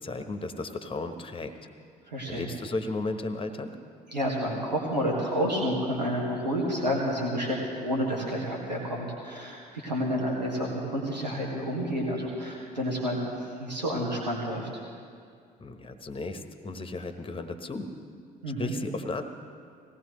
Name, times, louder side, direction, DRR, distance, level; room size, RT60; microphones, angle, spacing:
voice 1, 0.0-1.5 2.3-3.7 15.6-17.9 18.6-19.2, left 2 dB, 25° left, 8 dB, 1.2 m, -34 dB
voice 2, 2.1-2.5 4.1-14.7 18.4-18.7, equal, 90° right, -3 dB, 1.8 m, -30 dB
19.0 x 17.0 x 3.1 m, 2.2 s
figure-of-eight pair, 50°, 21 cm